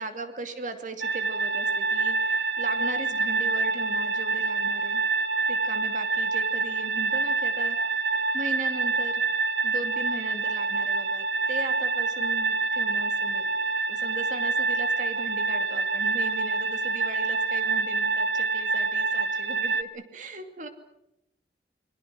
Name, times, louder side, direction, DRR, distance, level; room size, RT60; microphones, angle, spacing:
voice 1, 0.0-5.0 5.5-9.2 9.6-13.6 13.9-20.7, right 2 dB, 45° right, 7 dB, 2.5 m, -38 dB
sound 1, 1.0-19.8, right 3 dB, 75° right, 1.0 m, -26 dB
29.0 x 22.5 x 6.3 m, 0.86 s
head